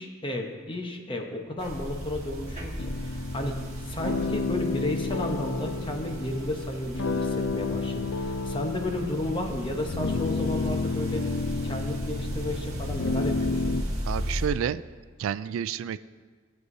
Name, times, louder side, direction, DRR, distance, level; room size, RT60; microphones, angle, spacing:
voice 1, 0.0-11.3 11.6-13.8, left 1 dB, 25° left, 3 dB, 1.0 m, -33 dB
sound 1, 1.6-14.5, equal, 35° right, 1.6 m, -36 dB
sound 2, 2.8-13.8, left 3 dB, 80° left, 0.5 m, -31 dB
voice 2, 14.1-14.8 15.2-16.0, right 8 dB, 80° right, 15 dB, 0.3 m, -29 dB
16.0 x 7.9 x 2.7 m, 1.5 s
head